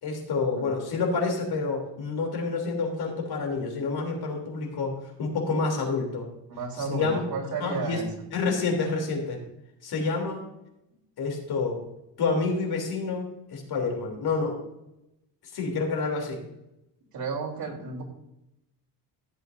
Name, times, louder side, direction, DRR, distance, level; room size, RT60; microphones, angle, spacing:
voice 1, 0.0-6.2 6.9-7.2 7.6-8.0 8.3-9.4 9.8-10.4 11.2-11.8 12.2-14.6 15.5-16.4, left 4 dB, 60° left, 1 dB, 3.4 m, -28 dB
voice 2, 6.5-8.3 17.1-18.0, right 3 dB, 55° right, -1 dB, 3.6 m, -33 dB
15.0 x 8.0 x 2.7 m, 0.87 s
cardioid pair, 125°, 42 cm